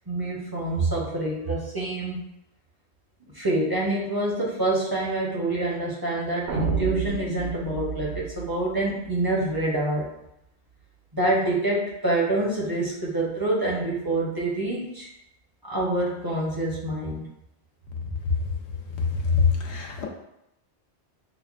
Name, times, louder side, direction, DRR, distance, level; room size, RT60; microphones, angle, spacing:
voice 1, 0.1-2.2 3.3-10.1 11.1-15.1 15.6-17.3, right 2 dB, 25° right, -5 dB, 0.7 m, -26 dB
sound 1, 6.5-9.6, right 6 dB, 65° right, 0.9 m, -30 dB
voice 2, 19.3-20.0, left 6 dB, 80° left, 0 dB, 0.9 m, -23 dB
5.7 x 2.1 x 2.4 m, 0.83 s
omnidirectional pair, 1.1 m